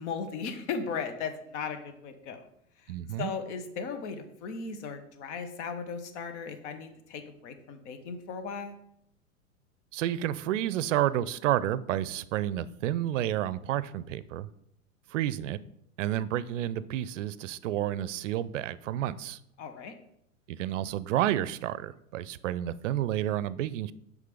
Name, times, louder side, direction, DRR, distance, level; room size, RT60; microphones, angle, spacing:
voice 1, 0.0-2.5 2.8-8.8 19.6-19.9, left 5 dB, 50° left, 8 dB, 1.2 m, -37 dB
voice 2, 2.9-3.3 9.9-14.5 15.1-15.6 16.0-19.4 20.5-23.9, right 12 dB, 55° right, 18 dB, 0.5 m, -30 dB
6.6 x 5.2 x 5.1 m, 0.75 s
hypercardioid pair, 105°, 44 cm